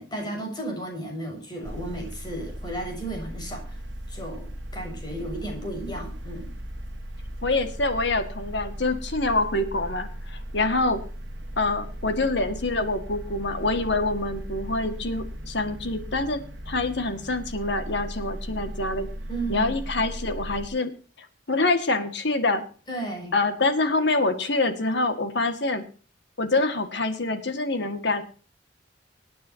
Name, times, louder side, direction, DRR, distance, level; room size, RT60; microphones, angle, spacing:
voice 1, 0.0-3.8 4.1-6.5 19.3-19.7 22.9-23.3, right 1 dB, 25° left, 1 dB, 6.7 m, -34 dB
sound 1, 1.6-20.7, equal, 70° right, 1.8 m, -37 dB
voice 2, 7.4-11.0 11.6-16.4 16.7-19.1 19.5-20.9 21.2-22.6 23.3-25.8 26.4-28.2, left 2 dB, 65° left, 8 dB, 2.0 m, -26 dB
25.5 x 9.3 x 2.9 m, 0.38 s
head